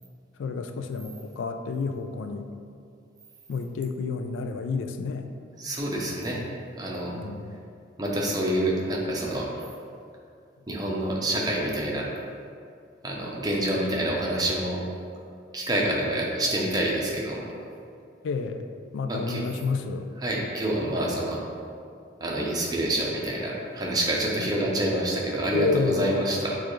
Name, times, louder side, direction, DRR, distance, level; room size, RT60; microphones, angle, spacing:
voice 1, 0.4-2.5 3.5-5.3 7.1-7.5 18.2-18.6 18.9-20.1 24.4-24.5 25.5-26.2, left 4 dB, 85° left, 7 dB, 0.3 m, -30 dB
voice 2, 5.6-6.4 6.8-7.1 8.0-9.5 10.7-12.1 13.0-14.8 15.5-17.5 19.1-19.4 20.2-21.4 22.2-26.6, right 1 dB, 20° right, -3 dB, 0.6 m, -27 dB
6.6 x 2.4 x 3.1 m, 2.4 s
head